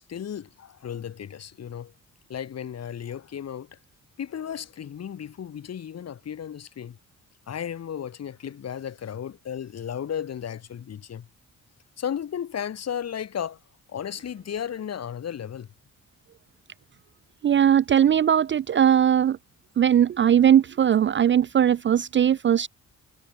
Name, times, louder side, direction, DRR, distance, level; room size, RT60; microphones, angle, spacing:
voice 1, 0.0-1.9 2.3-3.7 4.2-7.0 7.5-11.3 12.0-13.6 13.9-15.7, left 8 dB, 50° left, 1.6 m, -34 dB
voice 2, 17.4-19.4 19.8-22.7, right 9 dB, 35° right, 0.4 m, -19 dB
cardioid pair, 120°, 33 cm